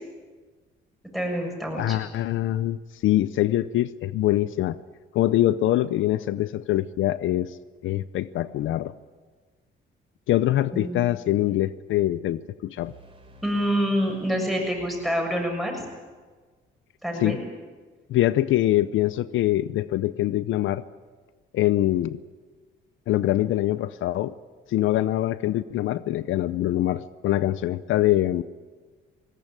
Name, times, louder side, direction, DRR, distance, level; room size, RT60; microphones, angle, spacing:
voice 1, 1.1-2.0 10.7-11.0 13.4-15.8 17.0-17.4, equal, ahead, 2 dB, 7.2 m, -27 dB
voice 2, 1.8-4.8 5.1-7.5 7.8-8.9 10.3-12.9 17.2-17.4 18.1-20.8 21.5-22.2 23.1-24.3 24.7-28.4, left 14 dB, 80° left, 16 dB, 0.6 m, -24 dB
sound 1, 12.8-15.8, equal, 25° right, 5.1 m, -50 dB
20.5 x 18.0 x 8.8 m, 1.4 s
cardioid pair, 90°, 20 cm